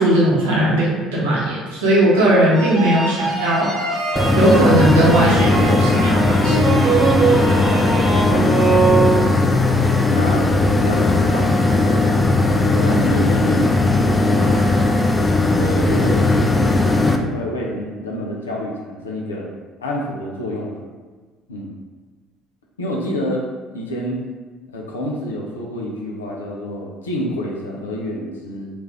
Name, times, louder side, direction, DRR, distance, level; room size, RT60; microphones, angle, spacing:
voice 1, 0.0-3.7 4.4-6.7, right 1 dB, 80° right, -6 dB, 0.9 m, -17 dB
sound 1, 2.5-9.7, right 4 dB, 45° right, 0.8 m, -21 dB
sound 2, 4.2-17.2, left 2 dB, 15° left, 0.4 m, -17 dB
voice 2, 10.1-10.5 10.8-12.1 12.7-13.7 15.6-16.8 17.2-19.5 19.8-20.8 21.5-21.7 22.8-23.4 23.7-24.2 24.7-28.7, equal, 85° left, -2 dB, 0.5 m, -27 dB
3.1 x 2.5 x 3.5 m, 1.3 s
hypercardioid pair, 60°, 0 cm